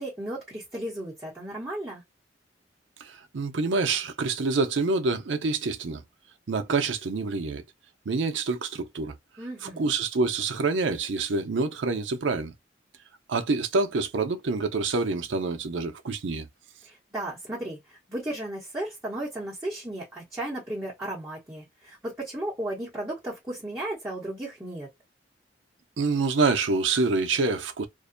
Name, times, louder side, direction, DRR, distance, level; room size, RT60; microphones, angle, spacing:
voice 1, 0.0-2.0 9.4-9.9 16.8-24.9, right 1 dB, 15° right, 0.9 m, -35 dB
voice 2, 3.0-6.0 6.5-7.6 8.1-9.1 9.6-12.5 13.3-16.5 26.0-27.9, right 3 dB, 90° right, 0.6 m, -26 dB
2.5 x 2.1 x 2.5 m
head